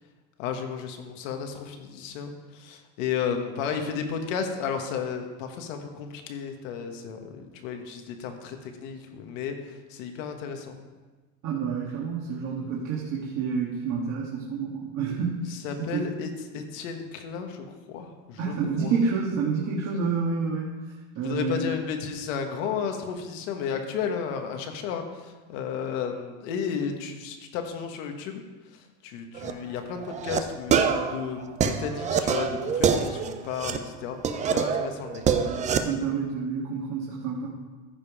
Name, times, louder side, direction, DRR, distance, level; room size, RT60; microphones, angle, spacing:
voice 1, 0.4-9.5 9.9-10.7 15.5-18.9 21.2-28.4 29.0-34.2 34.5-35.2, left 6 dB, 75° left, 5 dB, 1.5 m, -33 dB
voice 2, 11.4-16.1 18.4-20.7 21.1-21.7 35.4-37.5, right 5 dB, 45° right, -4 dB, 1.7 m, -29 dB
sound 1, 29.3-29.5 30.0-30.4 30.7-33.8 34.2-35.8, right 7 dB, 20° right, 0.4 m, -25 dB
14.5 x 5.3 x 4.9 m, 1.3 s
supercardioid pair, 145°, 38 cm